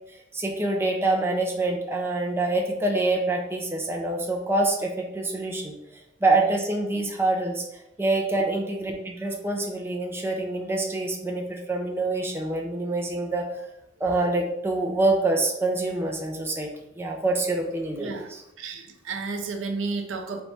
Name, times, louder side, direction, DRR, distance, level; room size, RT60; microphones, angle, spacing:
voice 1, 0.1-5.8 6.2-13.5 14.0-16.7 17.0-18.4, right 2 dB, 10° right, 0 dB, 0.5 m, -26 dB
voice 2, 18.6-20.4, right 4 dB, 80° right, 5 dB, 0.6 m, -32 dB
4.0 x 3.0 x 3.4 m, 0.84 s
head